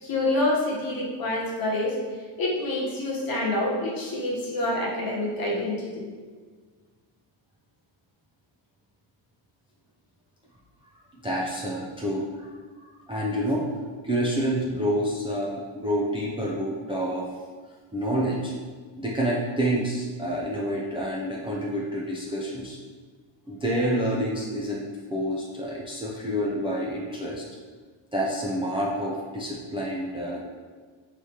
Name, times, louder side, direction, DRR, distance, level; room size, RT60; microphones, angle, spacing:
voice 1, 0.0-2.0 2.4-6.1, left 1 dB, 45° left, -4 dB, 1.1 m, -27 dB
voice 2, 11.2-12.5 12.8-13.7 14.0-17.3 17.9-18.5 19.0-22.8 23.5-24.8 25.1-27.4 28.1-30.4, equal, 15° right, -5 dB, 0.3 m, -28 dB
4.8 x 3.3 x 2.8 m, 1.5 s
cardioid pair, 155°, 48 cm